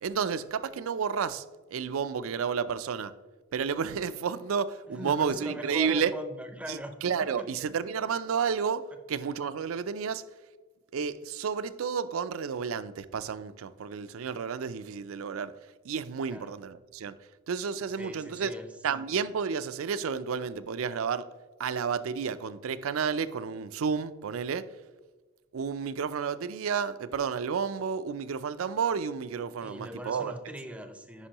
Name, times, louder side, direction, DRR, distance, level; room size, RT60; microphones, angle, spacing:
voice 1, 0.0-1.4 1.7-3.1 3.5-6.1 6.7-10.2 10.9-15.5 15.8-17.2 17.5-18.5 18.8-21.3 21.6-24.7 25.5-30.3, right 6 dB, 75° right, 0.4 m, -31 dB
voice 2, 4.9-7.5 16.3-16.6 18.0-18.7 29.6-31.3, equal, 5° right, 0.5 m, -41 dB
9.8 x 5.3 x 2.9 m
head